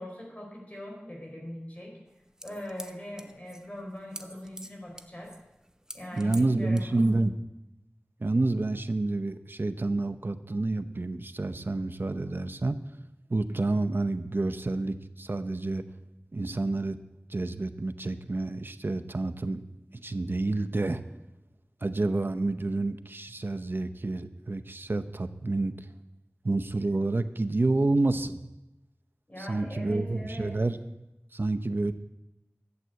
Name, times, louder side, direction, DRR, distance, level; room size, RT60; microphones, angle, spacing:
voice 1, 0.0-1.9 2.4-5.3 5.9-6.9 29.3-30.6, left 1 dB, 35° left, -1 dB, 4.7 m, -41 dB
sound 1, 2.1-7.3, right 1 dB, 15° right, 0.9 m, -46 dB
voice 2, 6.1-7.3 8.2-12.8 13.3-15.9 16.3-17.0 17.3-19.6 19.9-21.0 21.8-25.9 26.4-28.4 29.4-30.8 31.3-31.9, right 2 dB, 55° right, 10 dB, 0.8 m, -29 dB
12.5 x 7.7 x 8.1 m, 0.94 s
wide cardioid pair, 50°, 4 cm